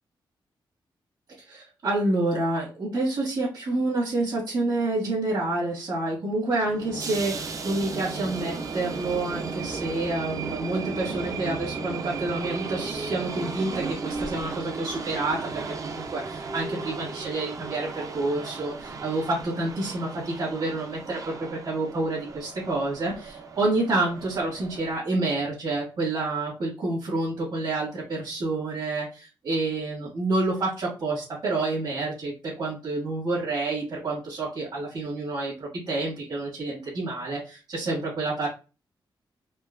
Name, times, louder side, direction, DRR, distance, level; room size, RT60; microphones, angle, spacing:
voice 1, 1.4-38.5, right 2 dB, 60° right, -9 dB, 1.7 m, -28 dB
sound 1, 6.6-24.9, right 4 dB, 40° right, 0.4 m, -35 dB
4.3 x 2.2 x 2.4 m, 0.32 s
wide cardioid pair, 140°, 9 cm